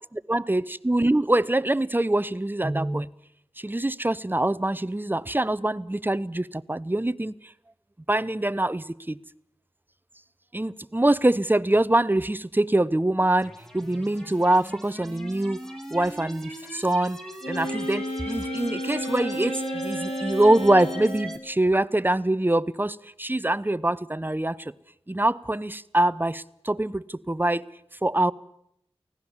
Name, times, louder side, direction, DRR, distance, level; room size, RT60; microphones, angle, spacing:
voice 1, 0.1-3.1 3.6-7.3 8.1-9.2 10.5-15.6 15.9-17.2 17.5-24.7 25.1-27.6 28.0-28.3, right 1 dB, 20° right, 0.7 m, -24 dB
sound 1, 13.4-21.4, equal, 5° left, 3.1 m, -40 dB
Wind instrument woodwind instrument, 17.4-21.5, equal, 70° left, 4.6 m, -32 dB
24.0 x 17.0 x 7.2 m
wide cardioid pair, 45°, 10 cm